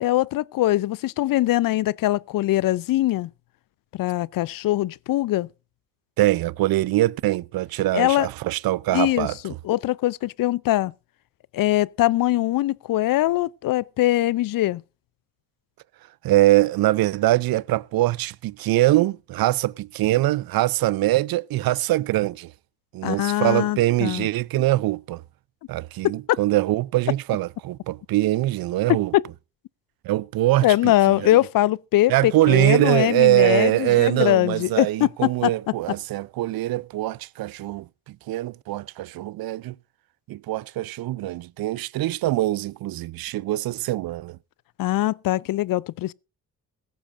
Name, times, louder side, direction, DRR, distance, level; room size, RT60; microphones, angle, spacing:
voice 1, 0.0-3.3 3.9-5.5 7.9-8.3 8.9-10.9 11.5-14.8 23.0-24.3 26.0-26.1 29.1-29.2 30.6-35.5 44.8-46.1, left 15 dB, 55° left, 0.6 m, -22 dB
voice 2, 6.2-9.4 16.2-22.5 22.9-25.2 25.7-29.1 30.0-31.3 32.1-39.7 40.3-44.4, right 16 dB, 55° right, 0.6 m, -23 dB
17.0 x 14.5 x 2.6 m
hypercardioid pair, 45°, 42 cm